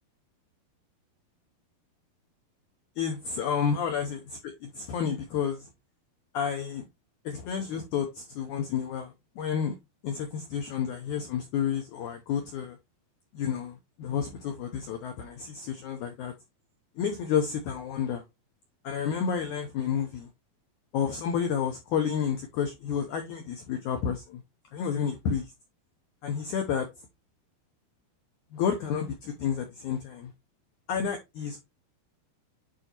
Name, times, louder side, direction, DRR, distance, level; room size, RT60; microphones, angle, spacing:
voice 1, 3.0-5.7 6.3-6.8 7.2-9.7 10.0-12.8 13.3-16.3 17.0-18.2 18.8-20.3 20.9-24.4 24.7-25.5 26.2-26.9 28.5-30.3 30.9-31.6, left 7 dB, 90° left, 1.7 m, -30 dB
8.8 x 4.0 x 2.9 m
omnidirectional pair, 4.6 m